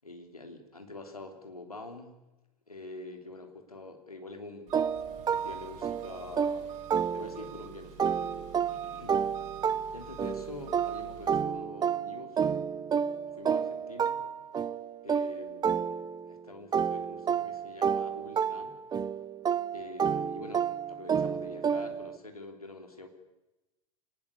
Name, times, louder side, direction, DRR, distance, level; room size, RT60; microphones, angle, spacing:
voice 1, 0.0-2.1 2.7-6.8 7.1-9.2 9.9-12.4 13.3-14.2 15.0-18.8 19.7-23.1, left 2 dB, 85° left, 4 dB, 3.4 m, -46 dB
sound 1, 4.7-7.6 8.0-16.3 16.7-22.2, right 7 dB, 20° right, 0.9 m, -30 dB
Engine, 4.7-11.4, right 9 dB, 40° right, 7.1 m, -49 dB
26.0 x 19.5 x 6.8 m, 1.0 s
figure-of-eight pair, 80°, 19 cm